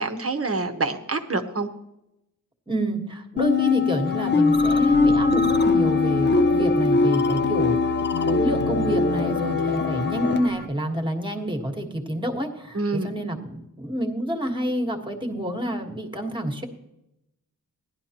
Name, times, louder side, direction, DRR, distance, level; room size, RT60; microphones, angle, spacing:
voice 1, 0.0-1.7 12.7-13.1, right 3 dB, 45° right, 6 dB, 1.0 m, -26 dB
voice 2, 2.7-16.7, equal, 15° right, 4 dB, 1.4 m, -28 dB
sound 1, 3.4-10.4, left 4 dB, 35° left, 0.6 m, -21 dB
sound 2, 4.0-10.7, equal, 70° left, 1.8 m, -34 dB
16.5 x 11.0 x 2.9 m, 0.87 s
wide cardioid pair, 95°, 33 cm